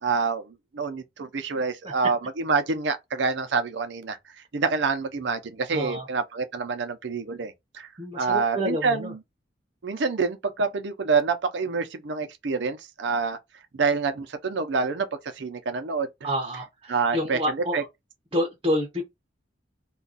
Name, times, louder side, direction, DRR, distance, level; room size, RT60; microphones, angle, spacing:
voice 1, 0.0-4.2 4.5-7.9 8.2-9.1 9.8-13.4 13.7-15.1 15.4-16.1 16.9-17.8, right 4 dB, 70° right, 0.5 m, -27 dB
voice 2, 5.7-6.1 8.0-9.1 16.2-17.9 18.3-19.0, equal, 25° right, 0.6 m, -28 dB
2.4 x 2.2 x 3.9 m
head